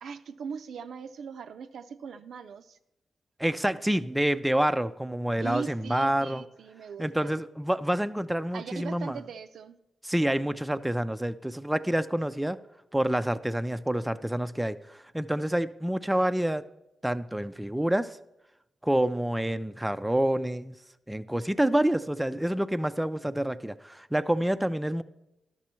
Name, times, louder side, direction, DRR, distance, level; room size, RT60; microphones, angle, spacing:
voice 1, 0.0-2.8 5.4-7.4 8.5-9.8, right 6 dB, 80° right, 10 dB, 0.4 m, -40 dB
voice 2, 3.4-6.4 7.0-9.2 10.1-12.6 12.9-16.6 17.0-18.2 18.8-20.7 21.1-25.0, right 1 dB, 5° right, 10 dB, 0.4 m, -27 dB
11.5 x 6.1 x 4.3 m, 0.88 s
cardioid pair, 65°, 0 cm